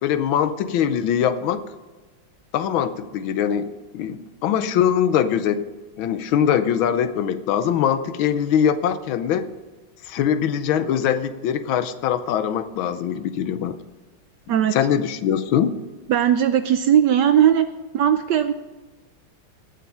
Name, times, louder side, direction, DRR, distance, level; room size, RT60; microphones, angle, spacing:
voice 1, 0.0-1.6 2.5-5.6 6.0-9.5 10.0-13.8 14.7-15.8, left 9 dB, 75° left, 12 dB, 1.5 m, -22 dB
voice 2, 16.1-17.7 17.9-18.5, right 10 dB, 75° right, 10 dB, 1.0 m, -18 dB
17.0 x 7.6 x 5.5 m, 1.2 s
omnidirectional pair, 2.3 m